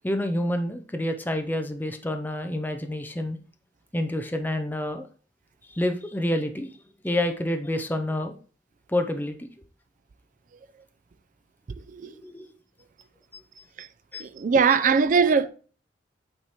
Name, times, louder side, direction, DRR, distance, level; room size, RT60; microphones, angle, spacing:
voice 1, 0.0-3.4 3.9-5.1 5.7-6.7 7.0-8.3 8.9-9.5 12.1-12.5 14.1-14.2, left 1 dB, 10° left, 0.6 m, -28 dB
voice 2, 14.2-15.5, right 5 dB, 45° right, 0.4 m, -21 dB
8.7 x 3.2 x 4.2 m
head